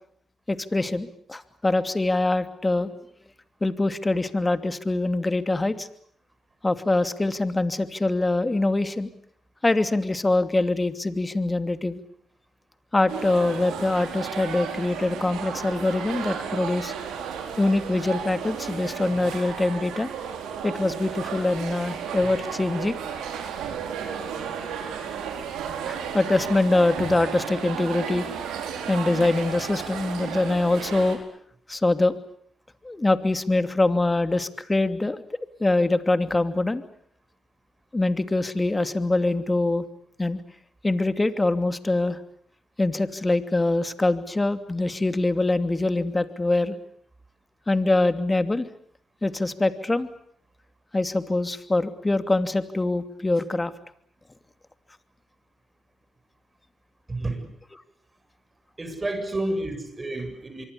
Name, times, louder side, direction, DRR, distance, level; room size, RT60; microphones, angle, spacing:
voice 1, 0.5-2.9 3.6-5.9 6.6-9.1 9.6-12.0 12.9-16.9 17.6-20.1 20.6-22.9 25.9-28.2 28.9-31.2 31.7-32.1 32.8-35.2 35.6-36.8 37.9-39.9 40.2-40.4 40.8-42.2 42.8-46.7 47.7-48.7 49.2-50.1 50.9-53.7 57.7-57.8, left 2 dB, 25° left, 10 dB, 2.7 m, -24 dB
sound 1, 13.1-31.2, right 7 dB, 85° right, 4.5 m, -33 dB
voice 2, 57.1-57.5 58.8-60.7, right 2 dB, 30° right, 7 dB, 7.9 m, -30 dB
26.0 x 23.5 x 8.5 m, 0.66 s
supercardioid pair, 50°, 0 cm